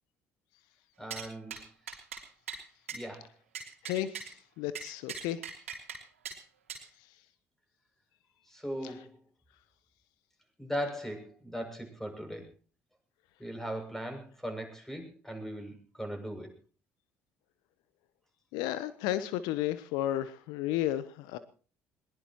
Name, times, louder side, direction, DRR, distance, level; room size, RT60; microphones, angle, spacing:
voice 1, 1.0-1.6 2.9-3.3 8.5-9.2 10.6-12.5 13.4-16.5, equal, 5° left, 4 dB, 6.9 m, -38 dB
sound 1, 1.1-1.3 1.5-1.6 1.9-2.2 2.5-2.6 2.9-3.0 3.5-4.3 4.7-6.0 6.2-6.4 6.7-6.8, right 6 dB, 85° right, 3.2 m, -40 dB
voice 2, 3.8-5.4 18.5-21.4, left 13 dB, 70° left, 14 dB, 0.9 m, -33 dB
21.5 x 20.5 x 3.0 m, 0.39 s
hypercardioid pair, 50°, 7 cm